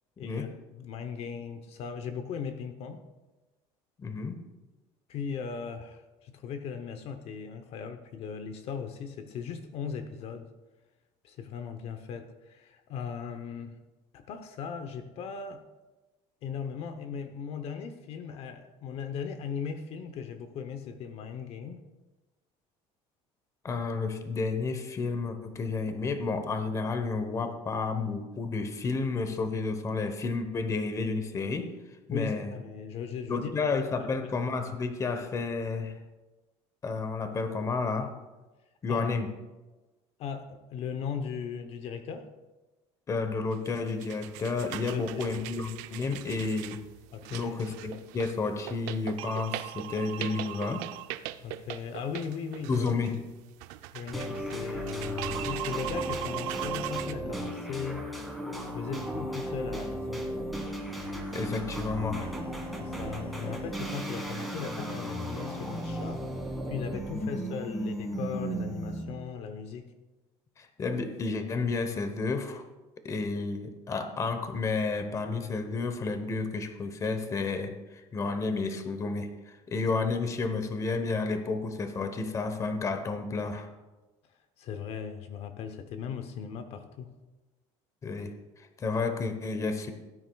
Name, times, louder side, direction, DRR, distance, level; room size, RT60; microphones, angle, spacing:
voice 1, 0.2-3.0 5.1-10.5 11.2-13.8 14.1-15.6 16.4-21.8 32.1-33.7 34.0-34.3 38.9-39.1 40.2-42.3 44.9-45.4 47.1-47.6 51.4-52.9 53.9-58.1 58.6-60.3 62.8-66.3 66.7-69.9 84.6-87.1, left 6 dB, 55° left, 8 dB, 0.8 m, -38 dB
voice 2, 4.0-4.4 23.6-31.7 32.1-32.5 33.3-36.0 36.8-38.1 38.8-39.3 43.1-46.8 47.3-50.9 52.7-53.2 61.3-62.3 67.2-67.3 70.6-72.6 73.0-83.7 88.0-89.9, left 4 dB, 25° left, 8 dB, 0.9 m, -31 dB
sound 1, 43.5-57.1, right 14 dB, 85° right, 0.5 m, -40 dB
sound 2, 54.1-69.2, right 1 dB, ahead, 1.7 m, -35 dB
17.0 x 9.5 x 2.3 m, 1.1 s
cardioid pair, 140°, 12 cm